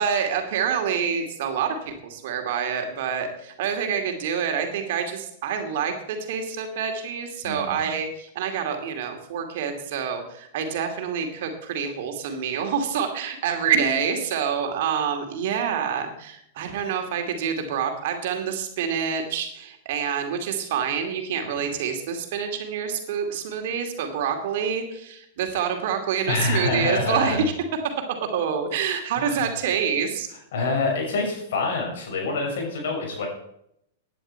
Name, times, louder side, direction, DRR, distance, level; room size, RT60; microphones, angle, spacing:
voice 1, 0.0-27.4 28.3-30.3, right 7 dB, 60° right, 5 dB, 2.5 m, -27 dB
voice 2, 7.4-7.8 21.6-21.7 26.3-27.4 29.2-29.5 30.5-33.3, left 3 dB, 65° left, 1 dB, 6.2 m, -26 dB
17.0 x 10.0 x 4.5 m, 0.76 s
hypercardioid pair, 100°, 0 cm